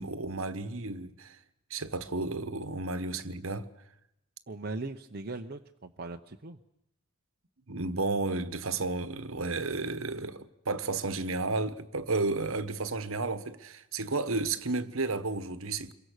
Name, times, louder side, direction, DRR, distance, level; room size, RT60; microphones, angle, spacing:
voice 1, 0.0-1.4 1.7-3.7 7.7-15.9, right 3 dB, 65° right, 1.3 m, -32 dB
voice 2, 4.5-6.6, right 3 dB, 45° right, 0.8 m, -39 dB
27.5 x 23.0 x 6.6 m
head